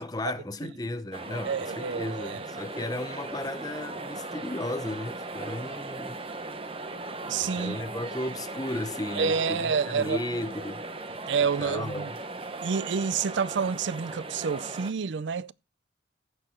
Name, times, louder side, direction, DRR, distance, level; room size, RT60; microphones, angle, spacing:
voice 1, 0.0-6.2 7.5-10.9 11.6-12.2, left 1 dB, 20° left, 0.8 m, -35 dB
sound 1, 1.1-14.9, right 2 dB, 30° right, 0.9 m, -38 dB
voice 2, 1.4-2.5 7.3-7.8 9.1-10.2 11.3-12.1 12.6-15.5, right 6 dB, 70° right, 0.5 m, -28 dB
15.5 x 6.7 x 4.4 m
head